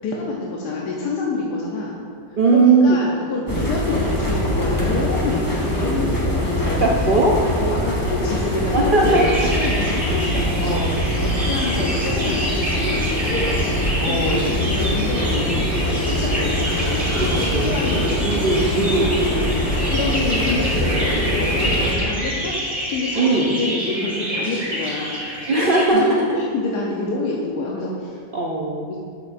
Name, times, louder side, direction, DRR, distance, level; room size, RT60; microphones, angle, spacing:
voice 1, 0.0-2.0 2.3-6.9 7.6-18.1 18.8-22.6 22.9-25.5 25.9-26.1 26.4-28.2 28.9-29.0, left 3 dB, 75° left, -3 dB, 1.4 m, -28 dB
voice 2, 2.4-3.0 6.8-7.4 8.7-9.3 10.6-10.9 14.0-14.5 17.1-17.7 18.2-19.5 23.2-23.5 25.5-26.4 28.3-28.9, right 3 dB, 75° right, -2 dB, 0.4 m, -19 dB
sound 1, 3.5-21.9, equal, 15° left, 0.9 m, -23 dB
sound 2, 9.0-25.9, equal, 20° right, 2.2 m, -28 dB
11.5 x 7.2 x 2.6 m, 2.2 s
omnidirectional pair, 1.8 m